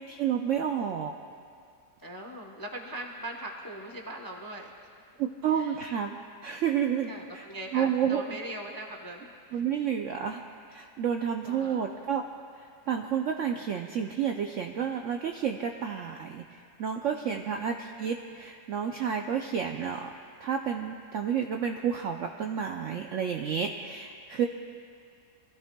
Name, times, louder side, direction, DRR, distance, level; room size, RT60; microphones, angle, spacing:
voice 1, 0.1-1.1 5.2-7.4 7.7-8.2 9.5-10.4 10.7-12.2 12.6-20.1 20.4-24.5, right 8 dB, 70° right, 4 dB, 0.7 m, -30 dB
voice 2, 2.0-4.7 5.5-5.8 7.1-9.6 11.3-11.8 17.2-17.4, right 1 dB, 25° left, 1 dB, 0.4 m, -41 dB
22.5 x 14.0 x 2.2 m, 2.3 s
omnidirectional pair, 1.8 m